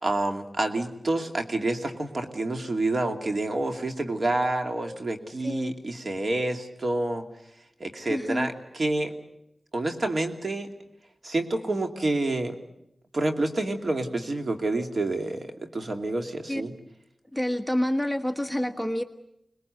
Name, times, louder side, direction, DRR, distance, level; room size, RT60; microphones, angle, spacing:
voice 1, 0.0-7.3 7.8-9.2 9.7-10.7 11.2-12.6 13.1-16.7, right 2 dB, 55° right, 5 dB, 2.6 m, -28 dB
voice 2, 5.4-5.8 8.1-8.5 16.5-16.6 17.3-19.0, left 1 dB, ahead, 6 dB, 1.3 m, -28 dB
26.0 x 20.5 x 8.1 m, 0.83 s
wide cardioid pair, 70°, 0 cm